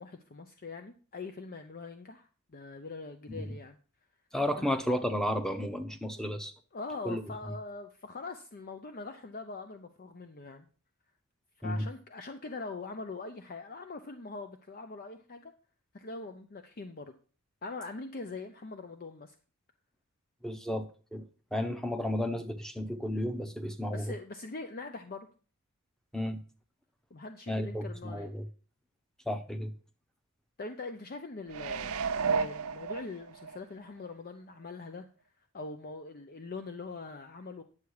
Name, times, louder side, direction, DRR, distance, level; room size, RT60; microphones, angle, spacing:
voice 1, 0.0-3.8 4.6-4.7 6.2-6.3 6.7-10.7 11.6-15.5 15.9-17.1 17.6-19.3 23.9-25.3 27.1-28.3 30.6-35.1 35.5-37.6, left 3 dB, 40° left, 7 dB, 0.7 m, -42 dB
voice 2, 4.3-6.5 7.0-7.2 11.6-11.9 20.4-21.2 21.5-24.1 26.1-26.4 27.5-28.5 29.3-29.7, equal, ahead, 8 dB, 0.9 m, -33 dB
sound 1, 31.5-33.6 34.0-34.1, right 5 dB, 70° right, 0.7 m, -32 dB
9.7 x 7.1 x 4.8 m, 0.39 s
head